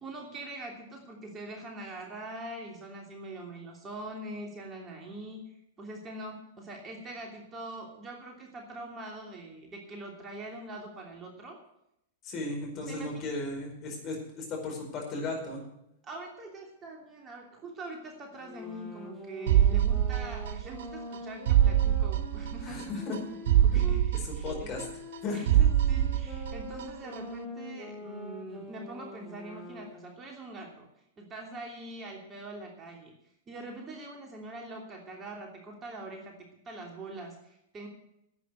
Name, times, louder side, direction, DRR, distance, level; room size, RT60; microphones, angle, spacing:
voice 1, 0.0-11.6 12.8-13.2 16.0-23.1 23.5-24.7 25.3-30.9 31.2-33.1 33.5-37.9, right 2 dB, 25° right, 0 dB, 3.0 m, -43 dB
voice 2, 12.2-15.6 22.6-23.2 24.2-24.8 25.2-25.4, left 3 dB, 35° left, 1 dB, 4.8 m, -35 dB
sound 1, 18.4-24.1 24.7-30.1, left 1 dB, ahead, 2.9 m, -44 dB
sound 2, 19.5-20.8 21.1-21.2 21.5-22.8 23.1-23.2 23.5-25.2 25.5-26.8 27.1-27.2, right 11 dB, 60° right, 0.5 m, -24 dB
11.0 x 8.6 x 8.2 m, 0.78 s
figure-of-eight pair, 100°, 0 cm